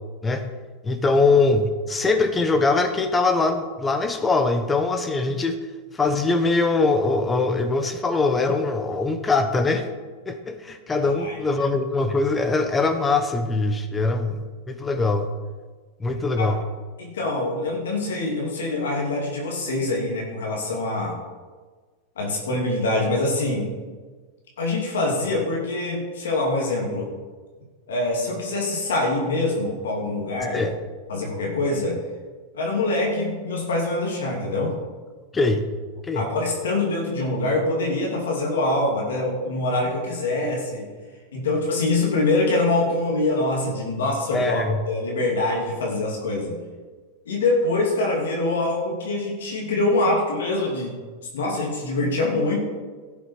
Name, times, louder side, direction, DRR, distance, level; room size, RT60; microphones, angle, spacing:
voice 1, 0.8-5.6 5.9-9.8 10.3-15.3 16.0-16.6 30.5-30.7 35.3-35.6 36.0-36.3 44.3-44.8, left 3 dB, 15° left, 8 dB, 1.1 m, -22 dB
voice 2, 11.0-11.4 16.1-16.5 17.0-21.1 22.2-23.7 24.6-27.1 27.9-30.6 31.1-32.0 32.5-34.7 36.1-40.8 41.3-46.5 47.3-50.9 51.3-52.6, left 2 dB, 90° left, -1 dB, 2.8 m, -24 dB
12.5 x 7.2 x 4.9 m, 1.4 s
hypercardioid pair, 120°, 0 cm